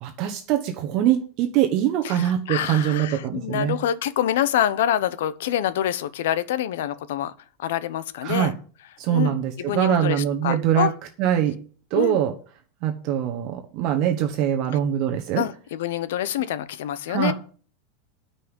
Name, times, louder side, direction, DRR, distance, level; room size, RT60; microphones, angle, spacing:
voice 1, 0.0-3.8 8.2-8.5 9.0-10.9 11.2-11.5 11.9-12.3 12.8-15.4 16.4-16.5 17.1-17.3, right 11 dB, 40° right, 4 dB, 1.1 m, -23 dB
voice 2, 2.0-7.3 7.6-8.5 9.1-10.9 11.9-12.2 15.4-17.3, left 11 dB, 70° left, 15 dB, 0.9 m, -26 dB
9.4 x 5.6 x 8.1 m, 0.41 s
supercardioid pair, 170°, 0 cm